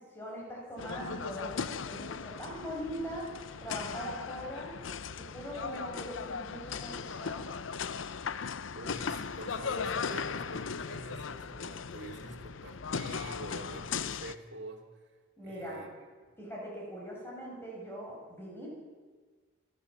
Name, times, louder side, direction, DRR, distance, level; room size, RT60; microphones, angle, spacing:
voice 1, 0.1-3.3 3.6-4.7 5.2-7.6 15.4-15.8 16.4-18.7, equal, 10° left, -3 dB, 7.0 m, -41 dB
sound 1, 0.8-14.3, left 5 dB, 75° left, 0.7 m, -38 dB
voice 2, 8.7-14.9 15.4-16.3, right 1 dB, 60° right, 0 dB, 2.7 m, -46 dB
28.0 x 12.5 x 7.7 m, 1.5 s
head